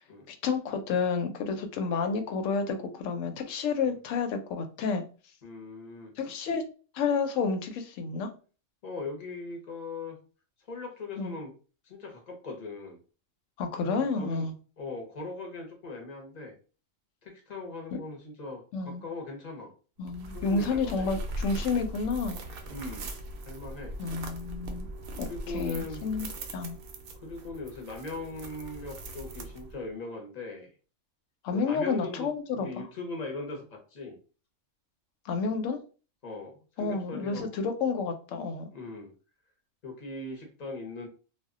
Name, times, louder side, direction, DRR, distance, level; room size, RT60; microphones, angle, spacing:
voice 1, 0.3-5.0 6.2-6.6 6.9-8.3 11.2-11.4 13.6-14.5 17.9-18.0 18.7-19.0 20.0-22.4 24.0-24.9 25.2-26.3 26.5-26.8 31.4-32.9 35.3-35.8 36.8-38.7, left 4 dB, 85° left, 6 dB, 0.9 m, -30 dB
voice 2, 5.4-6.1 8.8-10.2 10.7-11.5 11.8-13.0 13.9-14.4 14.8-16.5 17.2-19.7 20.3-21.1 22.7-23.1 23.4-24.0 25.2-26.0 27.2-30.7 31.5-34.2 36.2-37.5 38.7-39.1 39.8-41.1, left 3 dB, 40° left, 2 dB, 0.7 m, -40 dB
sound 1, 20.0-29.9, right 1 dB, 60° right, 0.6 m, -40 dB
2.2 x 2.1 x 3.6 m, 0.37 s
omnidirectional pair, 1.3 m